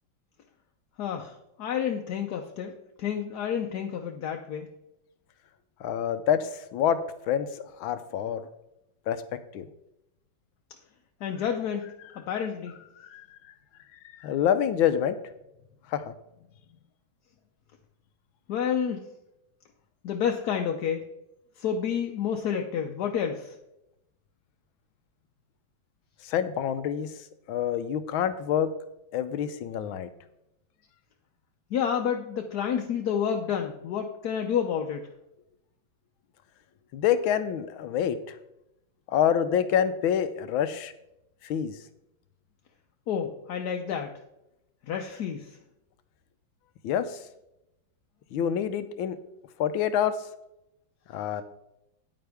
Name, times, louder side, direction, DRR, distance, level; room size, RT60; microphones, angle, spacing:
voice 1, 1.0-2.7 3.0-4.7 11.2-12.7 18.5-19.0 20.0-21.1 21.6-23.6 31.7-35.1 43.1-44.2 44.9-45.6, left 8 dB, 65° left, 3 dB, 1.1 m, -29 dB
voice 2, 5.8-8.5 9.1-9.2 9.5-9.7 13.0-13.3 14.2-15.2 15.9-16.1 26.2-27.1 27.5-28.7 29.1-30.1 36.9-38.4 39.1-40.9 41.4-41.8 46.8-47.2 48.3-49.2 49.6-50.3 51.1-51.4, left 9 dB, 85° left, 12 dB, 1.5 m, -27 dB
9.6 x 9.0 x 3.5 m, 0.86 s
omnidirectional pair, 2.2 m